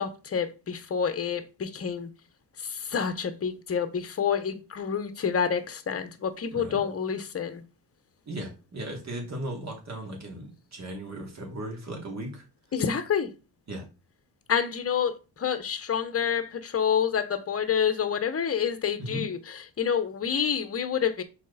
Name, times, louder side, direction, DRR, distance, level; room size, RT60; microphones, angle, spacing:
voice 1, 0.0-2.1 2.6-7.6 12.7-13.3 14.5-21.2, left 7 dB, 35° left, 1.0 m, -28 dB
voice 2, 8.3-12.4 13.7-13.8 19.0-19.2, right 1 dB, 40° right, 2.8 m, -37 dB
6.3 x 4.3 x 4.1 m
cardioid pair, 105°, 41 cm